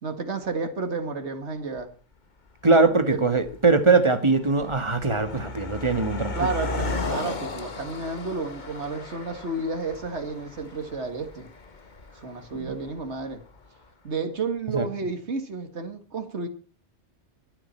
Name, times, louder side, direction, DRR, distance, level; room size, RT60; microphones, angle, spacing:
voice 1, 0.0-1.9 3.1-3.2 6.3-11.5 12.1-13.4 14.0-16.5, right 3 dB, 75° right, 2.2 m, -31 dB
Car passing by, 1.8-1.9 2.7-2.9 3.2-13.6, left 3 dB, 40° left, 1.4 m, -36 dB
voice 2, 2.6-6.3 12.5-12.7 14.7-14.8, right 3 dB, 25° right, 1.7 m, -21 dB
23.5 x 10.0 x 4.4 m
omnidirectional pair, 1.2 m